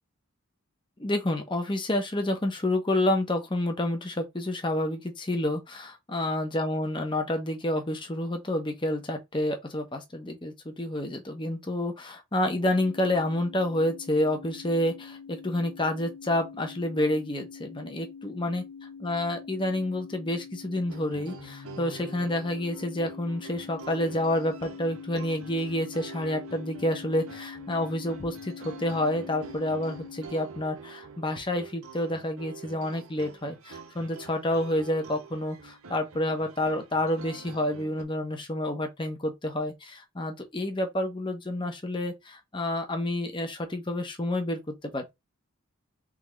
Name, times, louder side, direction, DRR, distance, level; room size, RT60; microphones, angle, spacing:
voice 1, 1.0-18.6 19.0-45.1, left 1 dB, 20° left, 0.9 m, -29 dB
sound 1, 12.4-30.3, left 6 dB, 70° left, 0.6 m, -45 dB
sound 2, 20.9-38.0, right 5 dB, 80° right, 0.8 m, -47 dB
3.8 x 3.4 x 3.1 m
head